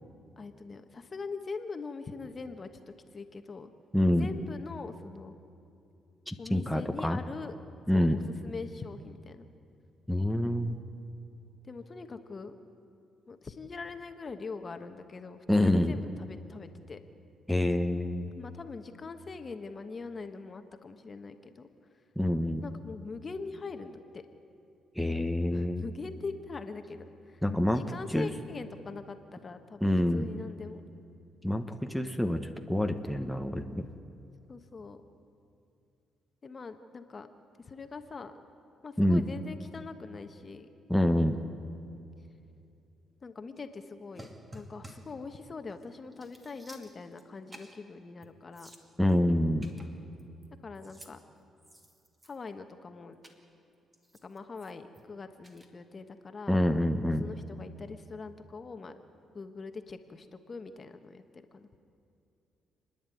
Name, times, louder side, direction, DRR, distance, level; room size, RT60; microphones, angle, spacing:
voice 1, 0.4-2.7 3.1-3.7 4.2-5.3 6.4-7.5 7.9-9.5 11.7-12.5 13.3-17.0 18.4-21.7 22.6-24.2 25.5-27.4 27.7-30.8 34.5-35.0 36.4-37.3 37.7-38.3 38.8-40.7 43.2-48.7 50.6-51.2 52.2-53.2 54.2-56.6 57.0-59.0 59.3-61.8, left 4 dB, 35° left, 8 dB, 1.3 m, -42 dB
voice 2, 3.9-4.3 6.3-7.2 7.9-8.2 10.1-10.8 15.5-16.0 17.5-18.3 22.2-22.6 24.9-25.8 27.4-27.8 28.1-28.3 29.8-30.3 31.4-32.4 32.7-33.8 39.0-39.3 40.9-41.4 49.0-49.7 56.5-57.2, left 1 dB, ahead, 4 dB, 1.2 m, -26 dB
sound 1, 44.1-45.2 45.7-45.8 46.1-47.2 47.5-47.8 48.2-48.3 48.5-49.2 49.6-50.5 50.7-51.1 51.6-52.5 53.2-53.4 53.9-55.0 55.4-55.7, right 1 dB, 20° right, 2.3 m, -52 dB
29.0 x 10.5 x 9.3 m, 2.7 s
cardioid pair, 90°, 0 cm